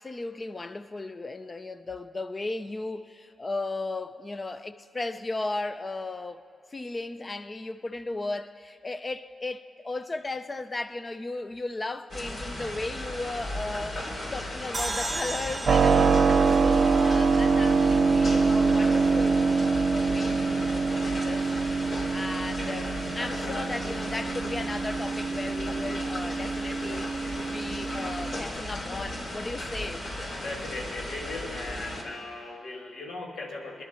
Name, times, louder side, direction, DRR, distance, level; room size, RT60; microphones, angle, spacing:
voice 1, 0.0-6.4 6.7-21.5 22.1-27.2 27.5-30.0, left 2 dB, 35° left, 0.7 m, -36 dB
sound 1, 12.1-32.0, left 1 dB, 60° left, 3.2 m, -36 dB
sound 2, 14.7-18.1, right 2 dB, 25° right, 0.9 m, -36 dB
Keyboard (musical), 15.7-28.4, right 4 dB, 70° right, 0.6 m, -25 dB
voice 2, 30.3-33.8, left 2 dB, 75° left, 1.7 m, -38 dB
21.0 x 10.5 x 4.5 m
cardioid pair, 60°, 0 cm